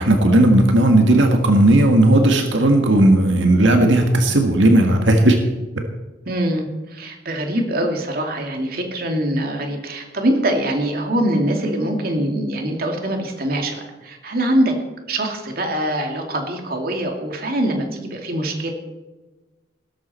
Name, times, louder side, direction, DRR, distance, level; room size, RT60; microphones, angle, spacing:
voice 1, 0.0-5.4, right 1 dB, 90° right, 4 dB, 1.7 m, -15 dB
voice 2, 6.3-14.8 15.1-18.7, right 1 dB, 55° right, 3 dB, 2.6 m, -23 dB
17.0 x 13.5 x 4.4 m, 1.2 s
head